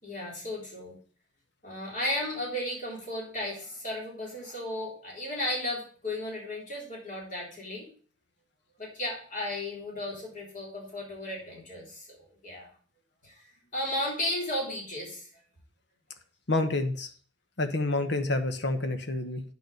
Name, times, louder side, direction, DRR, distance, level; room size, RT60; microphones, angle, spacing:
voice 1, 0.0-1.0 1.6-7.9 8.8-12.2 12.4-12.7 13.2-13.4 13.7-15.3, left 1 dB, 45° left, -3 dB, 3.9 m, -34 dB
voice 2, 16.5-17.1 17.6-19.4, left 2 dB, 60° left, 8 dB, 1.2 m, -28 dB
9.4 x 5.0 x 6.5 m, 0.43 s
head